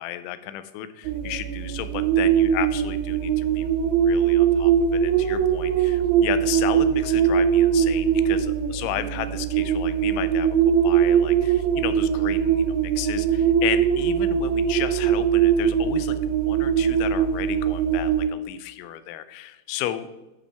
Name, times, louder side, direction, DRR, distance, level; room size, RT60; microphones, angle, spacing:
voice 1, 0.0-3.7 4.0-10.6 10.8-20.2, left 12 dB, 90° left, 12 dB, 3.0 m, -33 dB
sound 1, 1.1-18.3, right 8 dB, 85° right, 2.4 m, -21 dB
11.5 x 5.3 x 3.4 m, 1.0 s
omnidirectional pair, 5.3 m